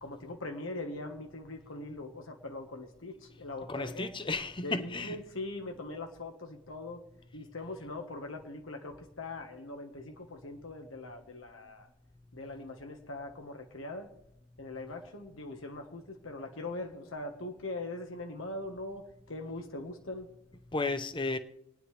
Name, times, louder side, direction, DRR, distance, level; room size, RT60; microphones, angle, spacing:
voice 1, 0.0-4.1 4.6-7.0 7.3-11.9 12.3-14.1 14.6-20.3, left 2 dB, 85° left, 1.5 m, -41 dB
voice 2, 3.7-5.2 20.7-21.4, left 3 dB, 25° left, 0.8 m, -33 dB
28.0 x 9.7 x 3.3 m
head